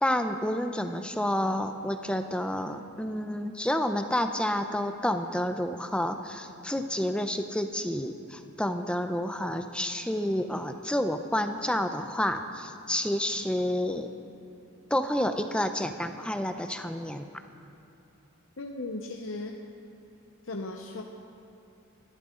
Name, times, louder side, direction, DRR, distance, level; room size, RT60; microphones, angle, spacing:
voice 1, 0.0-14.1 14.9-17.3, left 1 dB, 5° left, 7 dB, 0.6 m, -29 dB
voice 2, 18.6-19.6 20.4-21.0, left 2 dB, 60° left, 1 dB, 0.9 m, -36 dB
29.0 x 12.5 x 3.8 m, 2.7 s
head